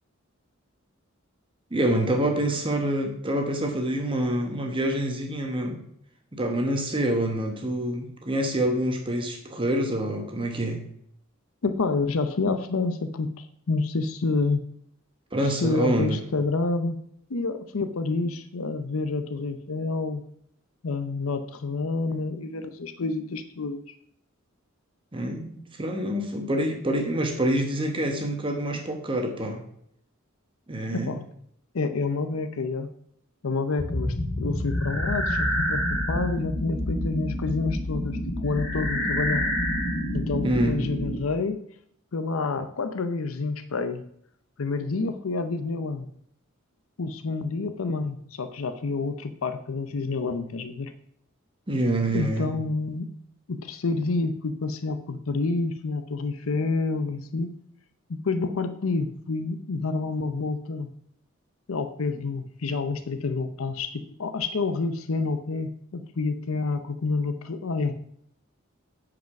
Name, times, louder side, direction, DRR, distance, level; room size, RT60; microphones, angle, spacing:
voice 1, 1.7-5.8 6.3-10.8 15.3-16.2 25.1-29.6 30.7-31.2 40.4-40.8 51.7-52.5, right 1 dB, 25° right, 3 dB, 1.2 m, -26 dB
voice 2, 11.6-14.6 15.4-17.0 17.3-20.2 20.8-23.8 30.9-31.2 31.7-32.9 33.4-39.5 40.1-41.6 42.1-44.0 44.6-46.1 47.0-50.9 52.1-53.1 53.5-57.5 58.1-60.9 61.7-67.9, left 3 dB, 85° left, 9 dB, 0.7 m, -28 dB
sound 1, 33.8-41.2, equal, 60° left, 2.4 m, -28 dB
9.3 x 5.1 x 5.7 m, 0.69 s
head